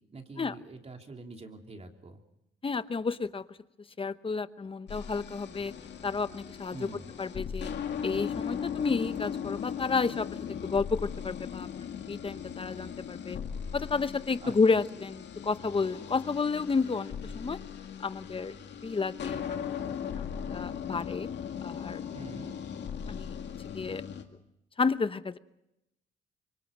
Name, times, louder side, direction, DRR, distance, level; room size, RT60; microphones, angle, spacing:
voice 1, 0.1-2.2 6.7-7.1 14.4-14.5 22.1-22.6, right 3 dB, 30° right, 3 dB, 3.2 m, -45 dB
voice 2, 2.6-3.6 4.0-5.7 6.0-6.9 7.2-7.7 8.0-10.4 10.6-13.4 13.7-17.6 18.0-18.5 18.8-19.7 20.2-21.3 21.6-22.0 23.1-23.4 23.7-24.0 24.8-25.4, left 4 dB, 25° left, 13 dB, 0.9 m, -31 dB
sound 1, 4.9-24.2, left 8 dB, 60° left, 2.2 m, -38 dB
25.5 x 24.0 x 5.4 m, 0.85 s
cardioid pair, 90°, 20 cm